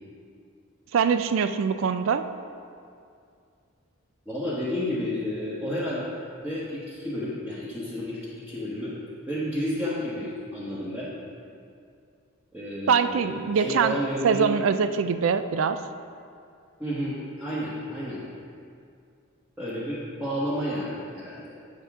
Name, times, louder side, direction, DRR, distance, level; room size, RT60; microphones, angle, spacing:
voice 1, 0.9-2.2 12.9-14.0 14.2-15.8, right 6 dB, 65° right, 11 dB, 0.3 m, -23 dB
voice 2, 4.3-6.0 6.4-8.9 9.3-11.1 12.5-14.6 16.8-18.2 19.6-21.5, equal, 10° right, -9 dB, 1.1 m, -31 dB
8.3 x 6.5 x 3.6 m, 2.4 s
head